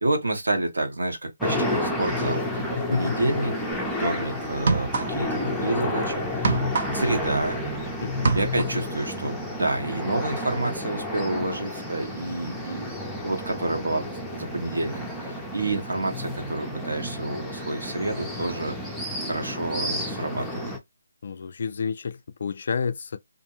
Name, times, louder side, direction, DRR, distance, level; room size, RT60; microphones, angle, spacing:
voice 1, 0.0-2.6 2.9-3.5 4.0-6.5 6.9-7.6 8.3-12.9 13.2-14.0 14.3-18.9 19.3-20.7, right 2 dB, 85° right, 1.0 m, -29 dB
sound 1, 1.4-20.8, left 1 dB, ahead, 0.5 m, -31 dB
voice 2, 2.8-3.2 8.0-8.4 11.3-11.5 21.2-23.2, left 5 dB, 55° left, 0.3 m, -30 dB
sound 2, 3.7-3.9 4.5-5.4 5.7-7.8 8.1-8.9, right 4 dB, 50° right, 0.6 m, -26 dB
2.5 x 2.2 x 2.8 m
figure-of-eight pair, 155°, 0 cm